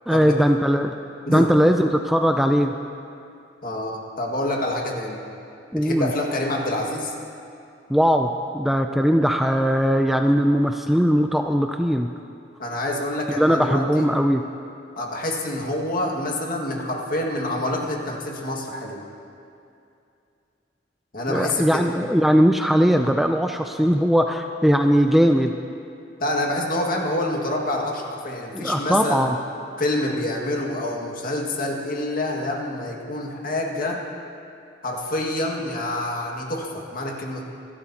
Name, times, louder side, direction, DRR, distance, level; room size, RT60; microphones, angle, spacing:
voice 1, 0.1-0.9 1.3-2.7 5.7-6.1 7.9-12.1 13.3-14.4 21.3-25.5 28.5-29.4, equal, ahead, 5 dB, 0.4 m, -19 dB
voice 2, 3.6-5.2 5.7-7.1 12.6-14.1 15.0-19.0 21.1-21.8 26.2-29.3 29.8-34.0 34.8-37.4, left 1 dB, 55° left, 0 dB, 1.9 m, -27 dB
26.5 x 12.5 x 2.9 m, 2.6 s
head